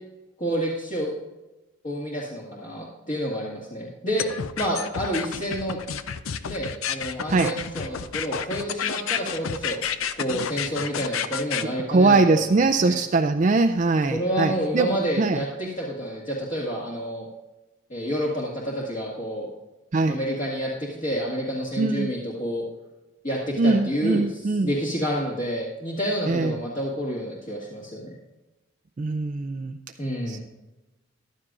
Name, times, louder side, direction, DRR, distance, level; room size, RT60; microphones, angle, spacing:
voice 1, 0.4-1.1 1.8-4.3 4.6-5.8 6.4-9.8 10.1-13.0 14.1-17.3 17.9-19.5 20.0-22.7 23.2-28.1 30.0-30.4, equal, 40° left, -5 dB, 2.0 m, -29 dB
sound 1, 4.2-11.6, left 7 dB, 90° left, 0.5 m, -30 dB
voice 2, 11.9-14.9 15.2-15.4 19.9-20.2 21.8-22.2 23.6-24.7 26.3-26.6 29.0-29.8 30.3-30.4, right 3 dB, 40° right, 6 dB, 0.4 m, -22 dB
14.5 x 11.5 x 2.5 m, 1.1 s
head